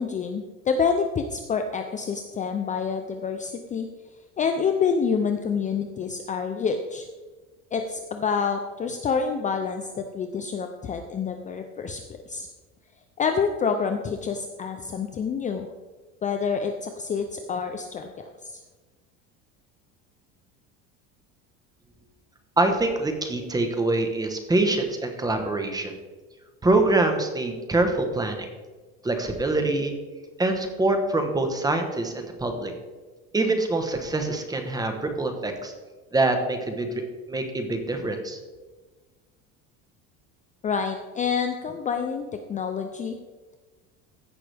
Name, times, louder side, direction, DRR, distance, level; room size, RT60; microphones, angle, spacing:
voice 1, 0.0-3.9 4.4-7.1 7.7-12.0 12.3-12.5 13.2-15.7 16.2-18.6 40.6-43.2, left 6 dB, 25° left, 6 dB, 0.5 m, -27 dB
voice 2, 22.6-25.9 26.6-28.5 29.0-29.9 30.4-32.7 33.3-35.7 36.1-36.9 37.3-38.4, right 2 dB, 10° right, 5 dB, 1.1 m, -25 dB
15.5 x 5.8 x 3.4 m, 1.3 s
cardioid pair, 140°, 32 cm